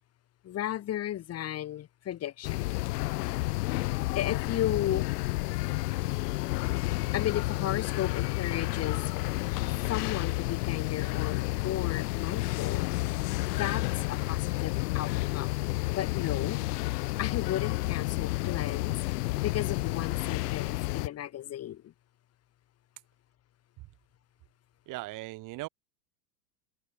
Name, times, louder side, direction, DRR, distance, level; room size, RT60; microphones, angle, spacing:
voice 1, 0.4-2.7 3.9-5.1 7.1-9.0 9.9-12.9 13.5-15.5 15.9-16.6 17.2-21.9, left 12 dB, 30° left, 1.8 m, -34 dB
sound 1, 2.4-21.1, left 20 dB, 75° left, 0.7 m, -30 dB
voice 2, 24.9-25.7, right 19 dB, 40° right, 1.3 m, -39 dB
hypercardioid pair, 115°, 48 cm